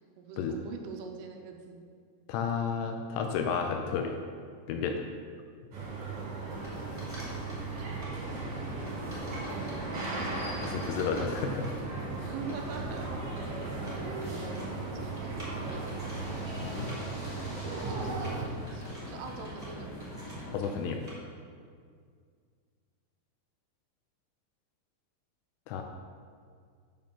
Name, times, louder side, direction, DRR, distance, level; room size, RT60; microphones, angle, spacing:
voice 1, 0.2-1.8 7.8-8.3 9.5-9.9 10.2-10.8 12.3-13.1 13.4-13.6 14.9-16.2 17.6-19.9, right 4 dB, 80° right, 3 dB, 3.3 m, -44 dB
voice 2, 2.3-4.2 4.7-5.0 10.6-11.7 16.6-16.9 20.5-21.0 25.7-25.8, left 6 dB, 80° left, 4 dB, 3.0 m, -31 dB
sound 1, 5.7-18.4, right 3 dB, 50° right, 2.4 m, -37 dB
sound 2, 6.5-20.5, equal, 50° left, 2.0 m, -42 dB
sound 3, 6.5-8.2 8.6-21.1, equal, 10° right, 0.9 m, -50 dB
8.7 x 6.9 x 6.0 m, 2.1 s
omnidirectional pair, 5.9 m